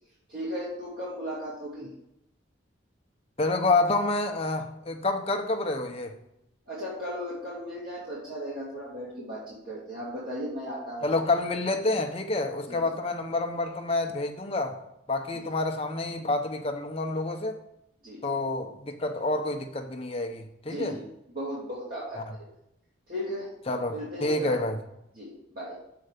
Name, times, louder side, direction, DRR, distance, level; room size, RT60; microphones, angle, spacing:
voice 1, 0.3-1.9 6.7-11.1 12.7-12.8 15.3-15.4 18.0-18.3 20.7-22.2 23.1-23.5 23.9-24.5 25.1-25.8, equal, 50° right, -8 dB, 2.1 m, -36 dB
voice 2, 3.4-6.1 11.0-14.8 15.1-17.5 18.2-21.0 23.7-24.8, left 2 dB, 30° left, 4 dB, 0.8 m, -28 dB
6.8 x 4.7 x 6.5 m, 0.82 s
head